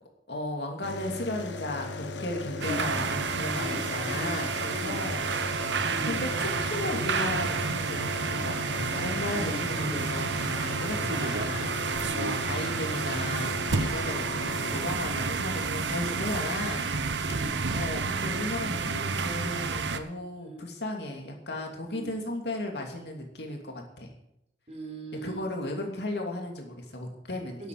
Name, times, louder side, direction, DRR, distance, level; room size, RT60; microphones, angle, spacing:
voice 1, 0.3-5.3 5.8-16.9 17.7-24.1 25.2-27.7, left 1 dB, 60° left, 2 dB, 2.8 m, -35 dB
sound 1, 0.8-15.4 16.8-16.9 17.0-17.5, left 2 dB, 80° left, 1.2 m, -38 dB
sound 2, 2.6-20.0, right 4 dB, 75° right, 1.0 m, -30 dB
voice 2, 3.5-4.4 4.7-5.0 5.9-6.2 9.3-10.0 12.0-12.3 17.2-17.6 20.3-20.6 21.9-22.1 24.7-25.4 27.6-27.7, equal, 40° right, 1 dB, 4.1 m, -40 dB
12.0 x 8.5 x 7.9 m, 0.78 s
head